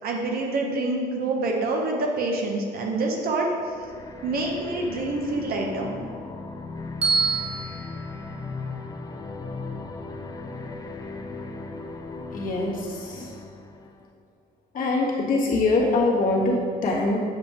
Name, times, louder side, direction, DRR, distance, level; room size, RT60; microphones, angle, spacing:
voice 1, 0.0-3.5 4.2-6.0, right 2 dB, 65° right, 0 dB, 1.2 m, -26 dB
sound 1, 3.6-14.1, left 3 dB, 20° left, 0.5 m, -37 dB
Bell, 7.0-9.2, right 4 dB, 35° right, 1.5 m, -28 dB
voice 2, 12.3-13.3 14.7-17.2, left 2 dB, 55° left, -3 dB, 1.5 m, -23 dB
8.0 x 5.1 x 3.4 m, 2.2 s
cardioid pair, 110°, 17 cm